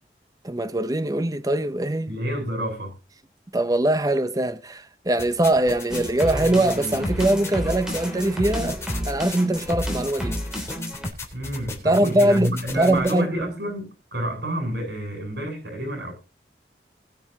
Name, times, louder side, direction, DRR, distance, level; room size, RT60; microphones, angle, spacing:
voice 1, 0.4-2.1 3.5-8.8 9.0-10.4 11.8-13.3, right 1 dB, 20° right, 0.7 m, -22 dB
voice 2, 2.1-2.9 11.3-16.1, right 1 dB, 70° right, 8.0 m, -29 dB
sound 1, 5.2-13.2, left 2 dB, 15° left, 3.8 m, -38 dB
sound 2, 5.9-11.1, equal, 5° right, 3.0 m, -30 dB
21.0 x 7.8 x 2.8 m
head